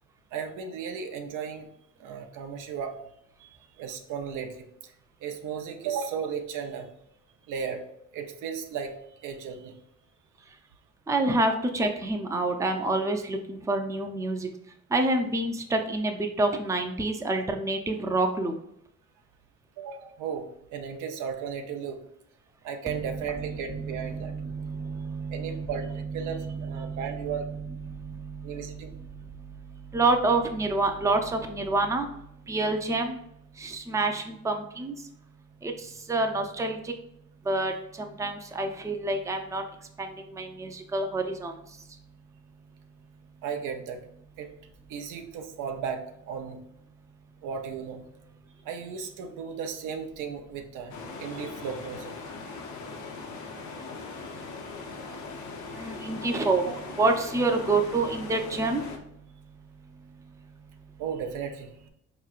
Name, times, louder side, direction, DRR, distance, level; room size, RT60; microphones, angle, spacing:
voice 1, 0.3-1.7 2.0-3.0 3.4-4.9 5.2-6.9 7.5-7.8 8.1-9.8 19.8-22.0 22.6-24.4 25.3-27.5 28.4-29.0 43.4-44.0 44.4-44.5 44.9-46.6 47.4-48.0 48.6-52.1 54.2-54.3 56.0-56.3 56.7-56.8 61.0-61.7, right 7 dB, 90° right, 4 dB, 0.6 m, -35 dB
voice 2, 11.1-14.5 14.9-18.5 22.9-29.2 29.9-32.1 32.5-33.2 33.6-34.9 35.6-36.9 37.5-39.6 40.0-41.5 55.7-56.6 57.0-58.8, right 2 dB, 10° right, 4 dB, 0.4 m, -28 dB
sound 1, 50.9-59.0, left 4 dB, 70° left, 0.7 m, -40 dB
4.4 x 3.0 x 2.4 m, 0.75 s
cardioid pair, 90°, 30 cm